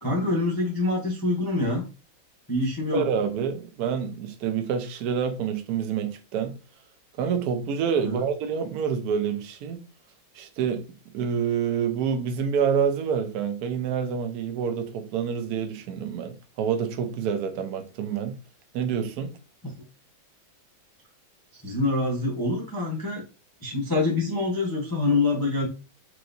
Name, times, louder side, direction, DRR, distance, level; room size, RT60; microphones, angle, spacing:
voice 1, 0.0-1.8 2.5-3.1 8.0-8.2 19.6-19.8 21.6-23.2 23.6-25.7, left 2 dB, 30° left, 0.3 m, -25 dB
voice 2, 2.9-6.5 7.2-9.8 10.3-10.8 11.1-18.4 18.7-19.3, right 7 dB, 70° right, 0.9 m, -27 dB
4.7 x 3.1 x 2.6 m
omnidirectional pair, 2.3 m